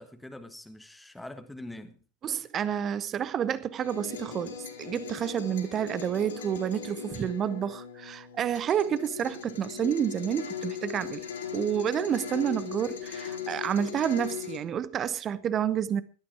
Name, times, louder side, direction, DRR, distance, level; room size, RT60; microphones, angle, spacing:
voice 1, 0.0-2.0, left 1 dB, 5° left, 1.5 m, -44 dB
voice 2, 2.2-11.3 11.5-16.0, right 9 dB, 25° right, 1.0 m, -29 dB
sound 1, 3.8-14.6, left 8 dB, 65° left, 4.6 m, -39 dB
17.5 x 12.5 x 4.7 m
figure-of-eight pair, 90°, 0 cm